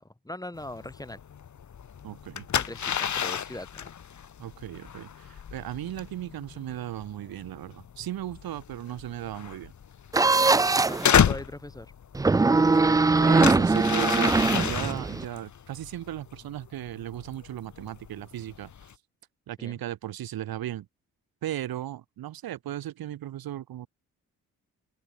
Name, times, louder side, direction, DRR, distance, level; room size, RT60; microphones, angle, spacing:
voice 1, 0.2-1.2 2.5-3.9 10.8-11.9 19.6-19.8, left 1 dB, 10° left, 5.3 m, -40 dB
sound 1, 0.5-18.9, left 8 dB, 55° left, 2.2 m, -32 dB
voice 2, 2.0-2.5 4.4-9.7 12.7-18.7 19.5-20.9 21.4-23.9, right 12 dB, 80° right, 6.0 m, -36 dB
sound 2, 10.1-11.1 12.1-15.2, right 3 dB, 10° right, 0.3 m, -21 dB
open air
cardioid pair, 70°, 35 cm